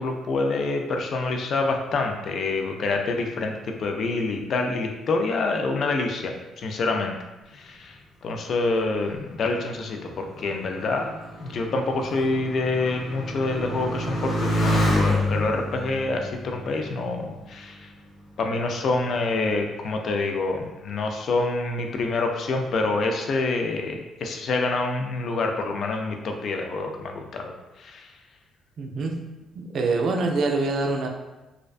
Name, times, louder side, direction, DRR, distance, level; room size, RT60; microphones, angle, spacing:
voice 1, 0.0-7.2 7.5-17.9 18.4-28.1, left 3 dB, 60° left, 3 dB, 0.3 m, -27 dB
Motorcycle, 8.8-17.8 18.6-19.2, left 1 dB, 80° left, 0.9 m, -29 dB
voice 2, 28.8-29.2 29.5-31.1, right 3 dB, 55° right, 2 dB, 0.3 m, -25 dB
2.5 x 2.1 x 2.4 m, 1.1 s
cardioid pair, 95°, 0 cm